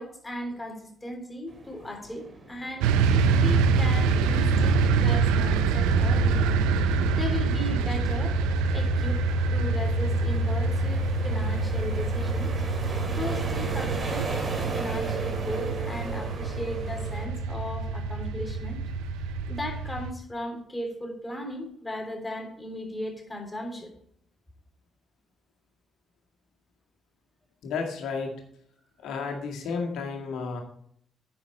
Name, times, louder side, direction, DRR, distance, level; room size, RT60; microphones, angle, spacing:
voice 1, 0.0-6.4 6.8-8.4 8.7-9.2 9.5-12.5 13.1-18.8 19.5-23.9, left 1 dB, 20° left, 3 dB, 3.3 m, -36 dB
sound 1, 1.5-17.3, right 3 dB, 45° right, 2.6 m, -38 dB
sound 2, 2.8-20.1, right 4 dB, 75° right, 0.6 m, -25 dB
voice 2, 27.6-28.3 29.0-30.6, left 5 dB, 70° left, 1 dB, 1.9 m, -32 dB
9.8 x 7.4 x 4.4 m, 0.67 s
hypercardioid pair, 45°, 0 cm